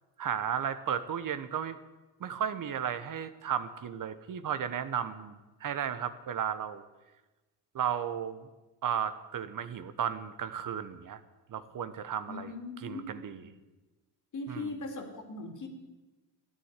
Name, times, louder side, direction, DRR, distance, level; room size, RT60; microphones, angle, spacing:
voice 1, 0.2-1.8 2.2-6.8 7.7-8.4 8.8-11.2 11.5-12.5 12.8-13.3 14.5-14.6, right 8 dB, 50° right, 11 dB, 1.1 m, -34 dB
voice 2, 12.3-13.6 14.3-15.7, left 2 dB, 45° left, 5 dB, 2.9 m, -40 dB
14.0 x 9.7 x 8.3 m, 1.1 s
supercardioid pair, 75°, 42 cm